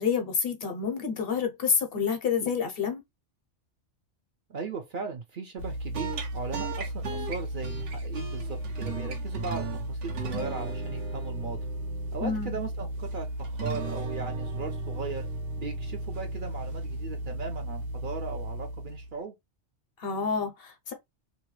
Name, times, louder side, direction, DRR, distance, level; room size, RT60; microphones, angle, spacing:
voice 1, 0.0-3.0 12.2-12.6 20.0-20.9, left 6 dB, 60° left, 0.8 m, -28 dB
voice 2, 4.5-11.6 12.1-15.3 15.6-19.3, right 4 dB, 55° right, 0.7 m, -38 dB
sound 1, 5.6-19.2, right 2 dB, 75° right, 1.0 m, -34 dB
2.8 x 2.2 x 3.0 m
omnidirectional pair, 1.2 m